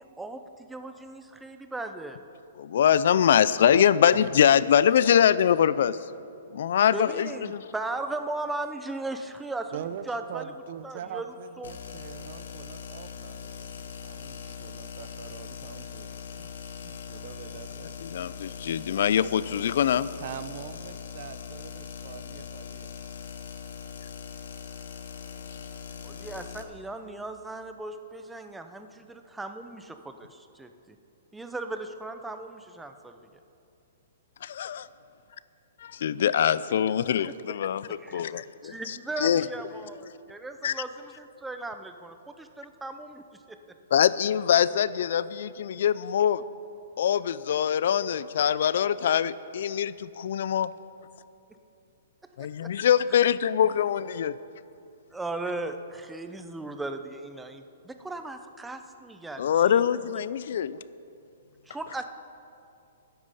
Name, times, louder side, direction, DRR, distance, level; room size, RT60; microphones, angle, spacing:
voice 1, 0.0-2.2 6.9-10.5 10.8-11.3 11.6-11.8 26.0-31.0 31.3-33.2 37.9-43.6 52.4-52.7 55.1-59.8 61.7-62.0, right 2 dB, 5° right, 7 dB, 0.6 m, -37 dB
voice 2, 2.6-6.0 6.5-7.6 18.0-20.1 34.4-34.9 35.8-38.7 39.2-39.5 40.6-40.7 43.9-46.4 47.0-50.7 52.4-54.4 59.4-60.8, left 9 dB, 60° left, 17 dB, 0.4 m, -23 dB
voice 3, 9.7-16.5 16.8-18.0 20.2-22.9, right 9 dB, 45° right, 12 dB, 0.6 m, -42 dB
sound 1, 11.6-26.6, left 7 dB, 75° left, 1.3 m, -41 dB
13.5 x 10.5 x 5.6 m, 2.6 s
hypercardioid pair, 165°, 0 cm